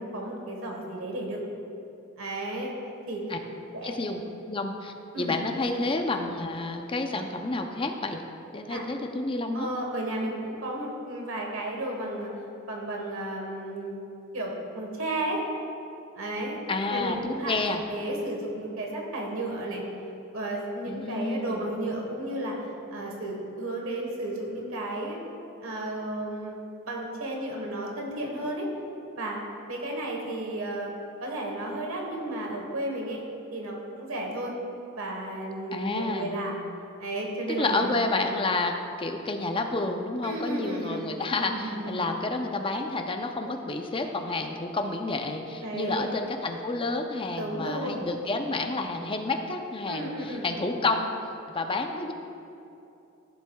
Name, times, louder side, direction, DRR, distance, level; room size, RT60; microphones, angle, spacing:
voice 1, 0.0-1.4 2.2-2.7 3.1-3.2 3.7-3.9 5.1-5.4 8.7-8.8 9.5-12.3 12.7-14.0 14.3-15.4 16.2-16.6 16.9-17.5 17.9-19.8 20.3-22.7 22.9-25.2 25.6-26.5 26.8-28.7 29.2-29.4 29.7-30.9 31.2-33.2 33.5-34.5 34.9-36.6 37.0-38.0 40.2-41.0 41.5-42.0 45.6-46.0 47.4-48.1 49.9-50.5, right 1 dB, 85° right, 0 dB, 1.4 m, -33 dB
voice 2, 3.8-4.2 4.5-8.2 8.5-9.7 16.7-17.8 20.9-21.7 35.7-36.3 37.5-51.1 51.5-52.1, left 2 dB, 25° left, 4 dB, 0.6 m, -30 dB
15.0 x 7.4 x 2.3 m, 2.8 s
head